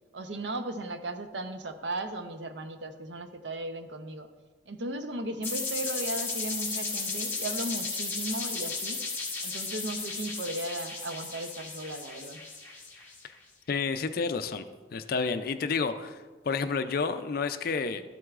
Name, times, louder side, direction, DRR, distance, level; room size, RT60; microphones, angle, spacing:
voice 1, 0.1-4.3 4.7-9.0 9.4-12.4, right 1 dB, 70° right, 8 dB, 0.7 m, -36 dB
sound 1, 5.4-13.2, left 4 dB, 10° left, 1.3 m, -35 dB
voice 2, 13.7-14.6 14.9-18.0, left 5 dB, 50° left, 10 dB, 0.4 m, -30 dB
12.5 x 7.7 x 2.4 m, 1.4 s
head